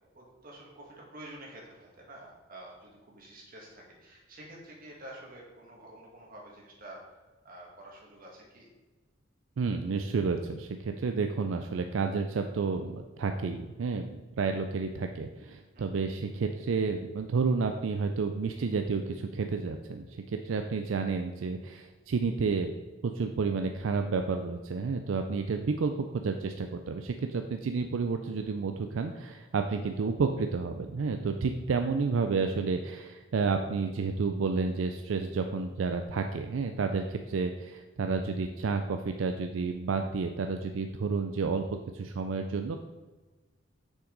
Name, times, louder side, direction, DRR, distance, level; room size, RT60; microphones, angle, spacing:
voice 1, 0.1-8.7 15.7-15.9 29.7-29.8, right 1 dB, 50° right, -2 dB, 1.9 m, -49 dB
voice 2, 9.6-22.7 23.0-42.8, right 4 dB, 85° right, 6 dB, 0.4 m, -30 dB
6.4 x 5.9 x 3.9 m, 1.2 s
head